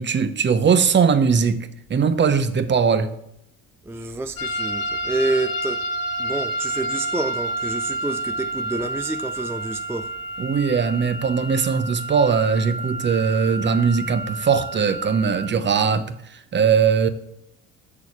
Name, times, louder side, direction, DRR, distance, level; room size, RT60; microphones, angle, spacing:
voice 1, 0.0-3.1 10.4-17.1, right 6 dB, 30° right, 0.9 m, -20 dB
voice 2, 3.8-5.8 6.2-10.1, right 2 dB, 5° right, 0.4 m, -28 dB
sound 1, 4.4-15.5, right 2 dB, 65° left, 1.3 m, -29 dB
6.8 x 6.5 x 7.2 m
cardioid pair, 100°, 35 cm